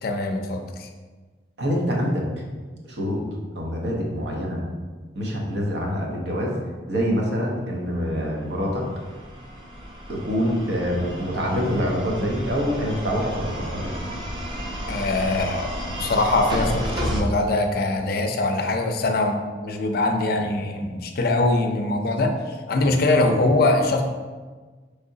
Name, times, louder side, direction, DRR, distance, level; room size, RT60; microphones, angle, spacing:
voice 1, 0.0-0.9 14.9-22.4 22.7-24.0, left 2 dB, 60° left, 5 dB, 0.5 m, -22 dB
voice 2, 1.6-2.2 2.9-3.2 3.5-4.6 5.1-6.6 6.9-8.9 10.1-14.0 22.8-22.9, equal, 75° right, -1 dB, 0.8 m, -25 dB
sound 1, 8.4-17.2, equal, 30° right, 0.6 m, -32 dB
4.6 x 3.3 x 2.7 m, 1.4 s
head